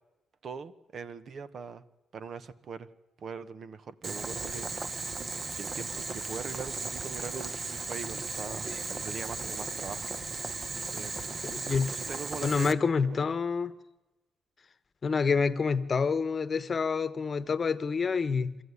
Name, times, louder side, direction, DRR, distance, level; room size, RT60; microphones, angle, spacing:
voice 1, 0.4-1.8 2.1-2.9 3.2-5.2 5.6-10.1 10.9-11.3 11.9-13.3, right 5 dB, 55° right, 1.2 m, -42 dB
Boiling, 4.0-12.7, right 3 dB, 35° right, 1.2 m, -36 dB
voice 2, 11.4-12.0 12.4-13.7 15.0-18.6, left 5 dB, 40° left, 1.1 m, -28 dB
25.5 x 14.5 x 9.8 m
cardioid pair, 90°, 0 cm